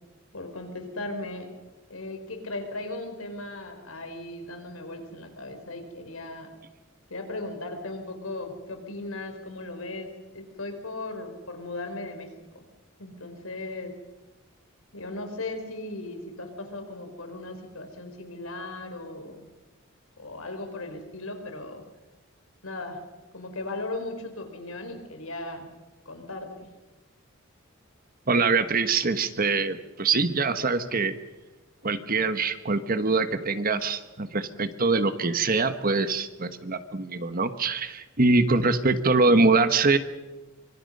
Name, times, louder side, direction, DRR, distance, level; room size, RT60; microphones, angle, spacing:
voice 1, 0.3-1.5 1.9-6.5 7.1-12.3 12.5-12.6 13.0-13.9 14.9-19.4 20.2-21.8 22.6-23.0 23.3-25.7 26.0-26.7, left 2 dB, 80° left, 5 dB, 4.4 m, -37 dB
voice 2, 28.3-31.1 31.8-40.0, right 3 dB, 45° right, 10 dB, 1.3 m, -24 dB
24.5 x 24.5 x 5.5 m, 1.2 s
head